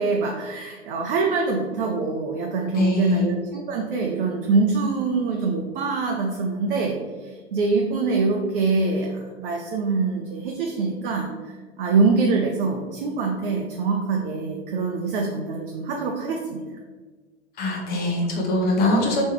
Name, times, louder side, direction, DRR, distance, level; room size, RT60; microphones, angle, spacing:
voice 1, 0.0-9.1 9.4-16.6, right 4 dB, 55° right, 0 dB, 0.6 m, -24 dB
voice 2, 2.7-3.3 17.6-19.2, left 2 dB, 30° left, 0 dB, 1.0 m, -22 dB
3.4 x 3.1 x 4.4 m, 1.4 s
figure-of-eight pair, 100°, 34 cm